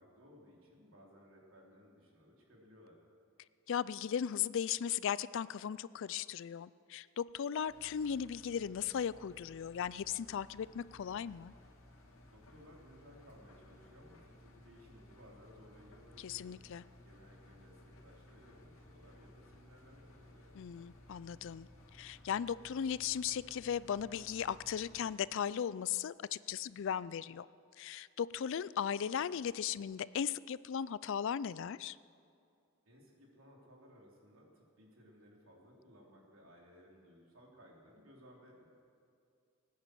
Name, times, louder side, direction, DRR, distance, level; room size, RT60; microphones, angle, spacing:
voice 1, 0.0-3.0 12.3-16.5 17.0-20.6 32.9-38.7, equal, 75° right, -1 dB, 3.4 m, -60 dB
voice 2, 3.7-11.5 16.2-16.8 20.5-27.5 27.8-32.0, left 8 dB, 65° left, 19 dB, 0.4 m, -37 dB
Engine, 7.6-25.0, left 1 dB, 85° left, 2.4 m, -59 dB
19.5 x 9.5 x 7.7 m, 2.5 s
head